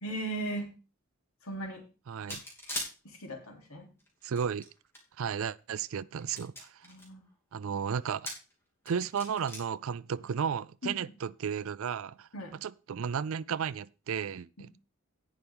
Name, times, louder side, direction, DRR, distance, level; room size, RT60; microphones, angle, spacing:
voice 1, 0.0-0.7 1.4-1.8 3.0-3.9 6.8-7.2 10.8-11.0 12.3-12.5 14.6-14.7, right 1 dB, 70° left, 3.0 m, -37 dB
voice 2, 2.1-2.4 4.2-4.6 5.2-6.8 7.5-8.3 8.9-12.3 12.6-14.7, right 7 dB, 65° right, 0.4 m, -34 dB
sound 1, 2.3-2.9 4.0-5.0 5.6-5.7 6.2-7.0 8.0-8.5 8.9-9.6, left 1 dB, 10° left, 2.8 m, -39 dB
17.5 x 5.9 x 3.5 m
head